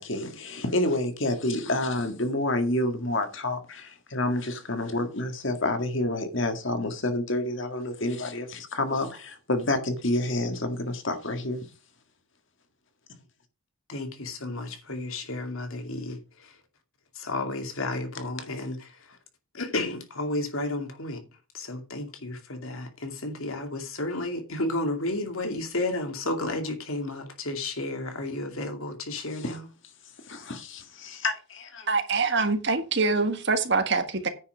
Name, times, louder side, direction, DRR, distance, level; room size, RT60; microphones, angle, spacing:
voice 1, 0.0-11.6 29.4-29.5 30.3-31.9, left 1 dB, 60° left, 1.9 m, -29 dB
voice 2, 13.9-16.5 17.1-19.2 19.5-21.2 21.5-29.7, left 2 dB, 75° left, 2.5 m, -32 dB
voice 3, 31.9-34.3, right 4 dB, 55° right, 1.6 m, -24 dB
9.6 x 5.8 x 6.2 m
head